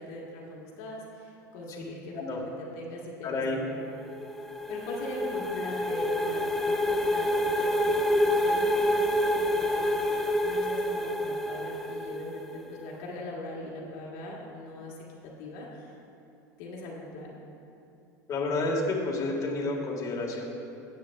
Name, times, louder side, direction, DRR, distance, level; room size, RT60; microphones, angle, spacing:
voice 1, 0.0-3.8 4.7-15.0 15.4-15.9 16.6-17.4, left 1 dB, 70° left, -3 dB, 1.5 m, -41 dB
voice 2, 3.2-3.6 18.3-20.4, left 2 dB, 35° left, -1 dB, 1.6 m, -30 dB
sound 1, 3.9-12.6, left 1 dB, 5° left, 0.5 m, -27 dB
13.0 x 8.4 x 2.3 m, 2.7 s
hypercardioid pair, 100°, 9 cm